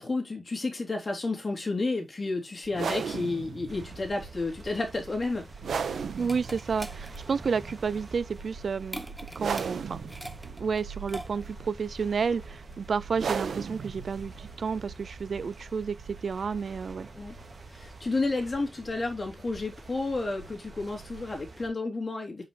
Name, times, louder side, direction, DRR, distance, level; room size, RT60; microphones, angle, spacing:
voice 1, 0.0-5.5 17.1-17.3 17.7-22.4, left 3 dB, 30° left, 3.1 m, -31 dB
sound 1, 2.7-18.0, right 6 dB, 80° right, 1.2 m, -38 dB
sound 2, 3.7-21.7, right 3 dB, 35° right, 2.3 m, -46 dB
sound 3, 5.4-11.7, right 1 dB, 5° right, 1.0 m, -44 dB
voice 2, 6.2-9.1 9.4-10.0 10.5-16.0 16.2-17.1, right 5 dB, 50° right, 0.3 m, -31 dB
8.6 x 5.5 x 3.3 m
wide cardioid pair, 175°, 0 cm